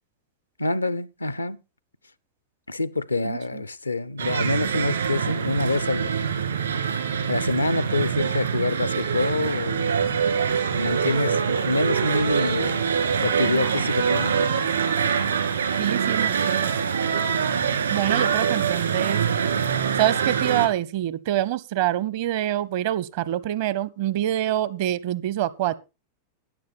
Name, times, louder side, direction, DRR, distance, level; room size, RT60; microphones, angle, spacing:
voice 1, 0.6-1.6 2.7-6.3 7.3-10.1 10.7-12.9 13.2-14.3, left 2 dB, 80° left, 0.6 m, -26 dB
voice 2, 3.2-3.6 15.8-16.7 17.9-19.2 20.0-25.7, right 13 dB, 50° right, 0.9 m, -26 dB
sound 1, 4.2-20.7, right 7 dB, 70° right, 2.5 m, -24 dB
13.5 x 9.8 x 4.3 m
figure-of-eight pair, 90°, 0 cm